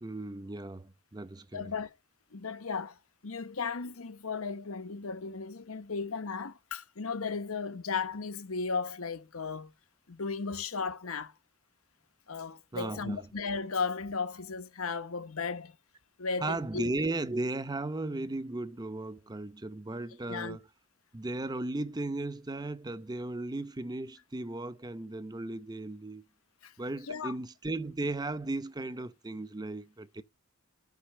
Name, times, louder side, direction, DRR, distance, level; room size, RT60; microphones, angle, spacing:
voice 1, 0.0-1.7 12.7-13.3 16.4-20.6 21.1-26.2 26.8-30.2, right 2 dB, 20° right, 0.7 m, -36 dB
voice 2, 1.5-1.9 2.3-9.7 10.1-11.3 12.3-15.8 16.2-16.8 20.3-20.6 26.6-26.7 27.1-27.3, left 4 dB, 80° left, 1.0 m, -35 dB
12.0 x 5.7 x 3.1 m
head